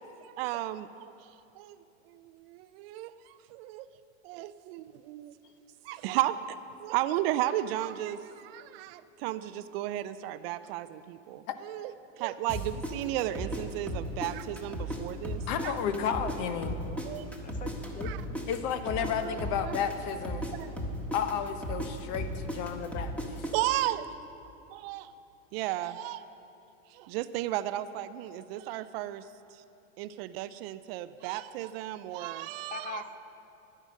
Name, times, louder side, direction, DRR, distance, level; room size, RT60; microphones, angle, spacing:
voice 1, 0.0-1.8 2.1-3.9 4.2-5.3 5.8-15.8 16.9-17.3 18.0-18.2 19.2-19.7 20.5-20.7 23.5-24.1 24.7-25.1 25.5-26.3 26.9-29.6 30.0-33.1, right 14 dB, 50° right, 14 dB, 0.5 m, -34 dB
sound 1, 12.5-15.0 15.2-19.1 19.4-23.5, equal, 5° left, 1.4 m, -35 dB
voice 2, 15.5-16.8 18.5-20.5 21.1-23.5, left 8 dB, 45° left, 9 dB, 1.0 m, -32 dB
voice 3, 17.4-18.4 32.7-33.2, left 5 dB, 20° left, 9 dB, 0.6 m, -42 dB
11.0 x 10.0 x 6.3 m, 2.7 s
hypercardioid pair, 120°, 39 cm